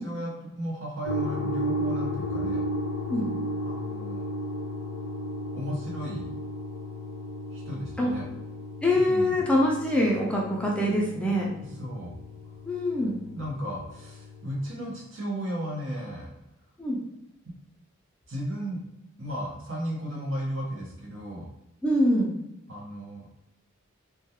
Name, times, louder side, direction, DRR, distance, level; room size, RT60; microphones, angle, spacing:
voice 1, 0.0-2.6 3.6-4.2 5.5-6.3 7.5-8.3 8.9-9.3 11.6-12.1 13.3-16.3 17.4-17.5 18.3-18.8 19.2-21.5 22.7-23.3, equal, 70° right, -3 dB, 0.8 m, -35 dB
sound 1, 1.0-14.7, equal, 70° left, 0.4 m, -34 dB
voice 2, 8.8-11.5 12.6-13.2 16.8-17.0 21.8-22.4, left 1 dB, 5° left, -3 dB, 0.4 m, -24 dB
2.3 x 2.2 x 2.7 m, 0.85 s
head